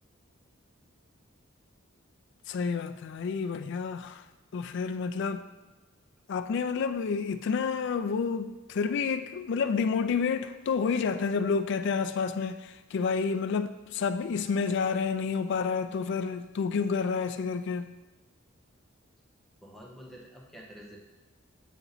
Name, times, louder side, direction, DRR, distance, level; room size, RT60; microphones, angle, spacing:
voice 1, 2.5-4.2 4.5-5.4 6.3-17.9, left 5 dB, 60° left, 0.3 m, -29 dB
voice 2, 19.6-21.0, equal, ahead, 0.9 m, -48 dB
8.2 x 2.8 x 4.0 m
head